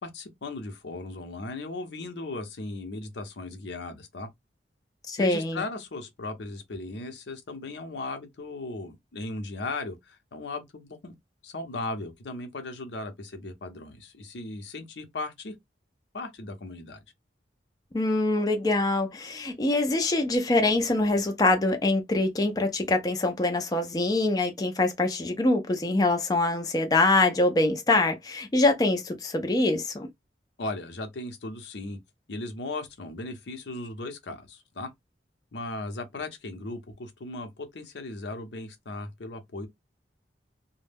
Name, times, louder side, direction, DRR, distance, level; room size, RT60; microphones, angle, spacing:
voice 1, 0.0-4.3 5.2-11.2 11.4-15.5 16.1-17.0 30.6-32.0 32.3-34.9 35.5-39.7, left 2 dB, 75° left, 0.7 m, -37 dB
voice 2, 5.1-5.6 17.9-30.1, left 2 dB, 20° left, 0.4 m, -24 dB
2.2 x 2.0 x 3.2 m
head